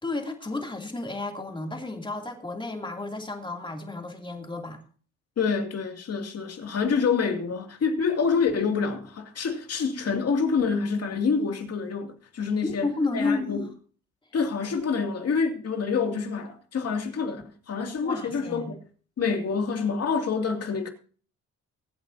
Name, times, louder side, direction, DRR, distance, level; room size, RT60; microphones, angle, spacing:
voice 1, 0.0-4.8 12.6-13.7 18.0-18.7, left 3 dB, 15° left, 2.9 m, -32 dB
voice 2, 5.4-12.9 13.1-13.7 14.3-18.8 19.2-20.9, left 5 dB, 55° left, 2.6 m, -27 dB
23.0 x 8.7 x 2.8 m
cardioid pair, 90°, 30 cm